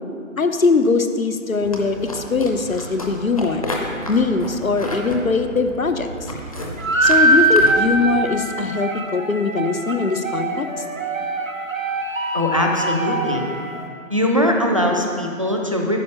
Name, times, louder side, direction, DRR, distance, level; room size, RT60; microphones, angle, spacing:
voice 1, 0.4-3.7 4.1-6.1 7.0-10.7, left 4 dB, 75° left, 7 dB, 0.9 m, -21 dB
sound 1, 1.6-8.2, equal, 25° left, 0.8 m, -32 dB
sound 2, 6.8-13.8, right 2 dB, 70° right, 1.3 m, -22 dB
voice 2, 12.3-13.4 14.1-16.0, left 1 dB, 25° right, 1 dB, 0.6 m, -20 dB
9.5 x 5.6 x 6.6 m, 2.5 s
figure-of-eight pair, 150°, 41 cm